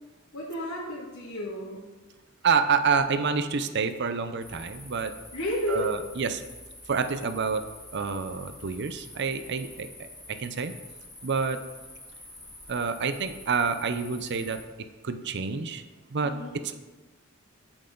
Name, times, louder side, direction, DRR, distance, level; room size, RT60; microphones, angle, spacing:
voice 1, 0.3-1.9 5.3-5.9 16.2-16.6, equal, 80° left, -8 dB, 2.3 m, -32 dB
voice 2, 2.4-5.1 5.7-6.4 6.9-7.6 7.9-9.9 10.3-10.7 11.2-11.6 12.7-14.6 15.0-15.8 16.1-16.3, right 5 dB, 55° right, 10 dB, 0.6 m, -28 dB
sound 1, 4.4-14.6, left 1 dB, 10° left, 2.3 m, -47 dB
8.8 x 8.0 x 3.9 m, 1.2 s
head